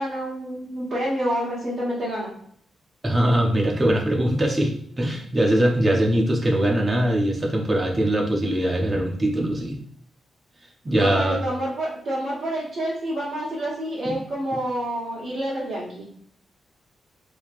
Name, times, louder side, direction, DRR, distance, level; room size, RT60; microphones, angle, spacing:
voice 1, 0.0-2.3 11.0-16.0, equal, 40° right, -10 dB, 1.4 m, -28 dB
voice 2, 3.0-9.8 10.8-11.4 14.0-14.2, right 1 dB, 20° right, 0 dB, 0.7 m, -22 dB
3.1 x 2.8 x 2.5 m, 0.64 s
cardioid pair, 115°, 0 cm